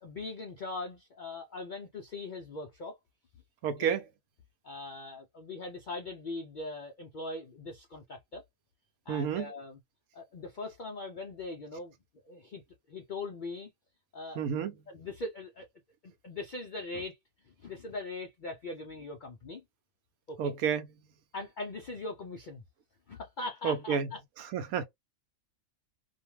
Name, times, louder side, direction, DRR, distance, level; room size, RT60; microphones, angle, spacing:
voice 1, 0.0-3.0 3.8-3.9 4.6-8.4 9.1-9.8 10.1-11.9 12.2-12.6 12.9-13.7 14.1-15.7 16.0-17.2 17.4-19.6 20.3-20.5 21.3-22.6 23.1-24.2, left 3 dB, 80° left, 0.4 m, -41 dB
voice 2, 3.6-4.1 9.1-9.5 14.4-14.7 20.4-20.9 23.6-24.1 24.5-24.9, right 7 dB, 90° right, 1.1 m, -30 dB
2.5 x 2.2 x 3.0 m
omnidirectional pair, 1.5 m